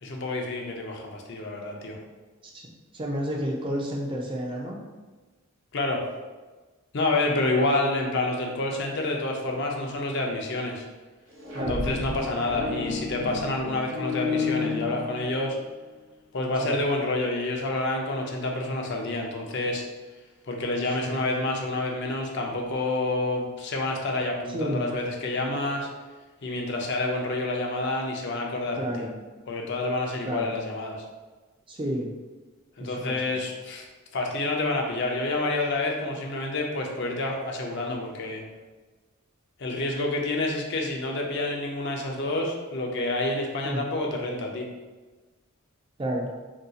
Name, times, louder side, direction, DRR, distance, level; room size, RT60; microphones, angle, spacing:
voice 1, 0.0-2.0 5.7-6.0 6.9-10.8 11.6-15.6 16.3-19.8 20.5-25.9 26.4-28.9 29.5-31.0 32.8-33.9 34.1-38.4 39.6-44.7, left 2 dB, 55° left, 1 dB, 0.5 m, -28 dB
voice 2, 2.9-4.8 11.5-11.9 16.6-16.7 21.0-21.2 24.5-24.8 28.8-29.2 30.3-30.5 31.7-32.1 32.8-33.2 43.6-43.8 46.0-46.3, equal, 25° right, -1 dB, 0.3 m, -31 dB
sound 1, 11.3-15.5, left 4 dB, 60° right, 1.0 m, -31 dB
2.7 x 2.3 x 3.8 m, 1.3 s
head